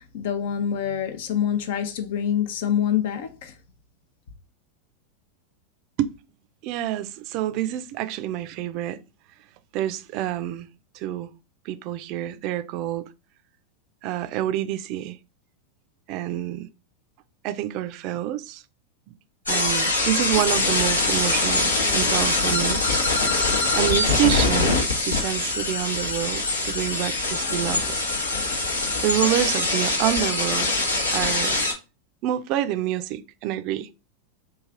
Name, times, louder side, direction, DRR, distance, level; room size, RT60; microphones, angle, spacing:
voice 1, 0.0-3.6, left 9 dB, 65° left, 0.6 m, -26 dB
voice 2, 6.6-9.0 9.7-10.7 10.9-11.3 11.7-13.1 14.0-15.2 16.1-16.7 17.4-18.6 19.1-19.2 19.5-23.1 23.7-27.9 29.0-30.7 31.1-31.6 32.2-33.9, right 13 dB, 50° right, 0.4 m, -27 dB
sound 1, 19.5-31.7, left 3 dB, 90° left, 1.0 m, -23 dB
3.2 x 2.3 x 3.7 m
hypercardioid pair, 95°, 0 cm